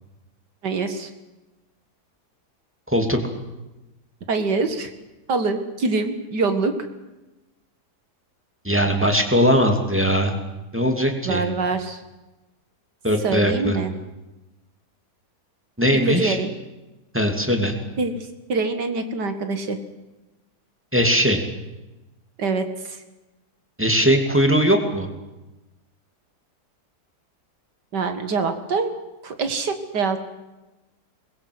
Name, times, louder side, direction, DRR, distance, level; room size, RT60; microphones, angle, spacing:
voice 1, 0.6-1.1 4.3-4.9 5.3-6.8 11.2-12.0 13.2-13.9 16.1-16.5 18.0-18.1 18.5-19.8 22.4-23.0 27.9-28.9 29.2-30.2, right 4 dB, 80° right, 8 dB, 2.5 m, -24 dB
voice 2, 2.9-3.2 8.6-10.3 10.7-11.4 13.0-13.8 15.8-16.4 17.1-17.7 20.9-21.4 23.8-25.1, equal, 5° right, 3 dB, 2.6 m, -19 dB
23.0 x 21.0 x 7.9 m, 1.1 s
omnidirectional pair, 1.8 m